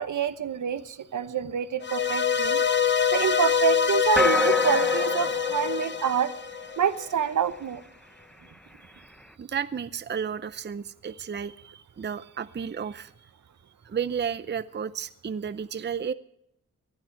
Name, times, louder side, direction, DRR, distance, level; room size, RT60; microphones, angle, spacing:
voice 1, 0.0-2.6 3.1-6.3 6.8-7.8, right 7 dB, 70° right, 12 dB, 0.9 m, -27 dB
sound 1, 1.8-7.1, left 7 dB, 35° left, 0.8 m, -25 dB
sound 2, 4.2-6.8, left 2 dB, ahead, 0.7 m, -27 dB
voice 2, 9.4-13.3 13.8-16.1, right 7 dB, 35° right, 14 dB, 0.6 m, -33 dB
19.5 x 12.0 x 4.5 m, 0.76 s
cardioid pair, 60°, 31 cm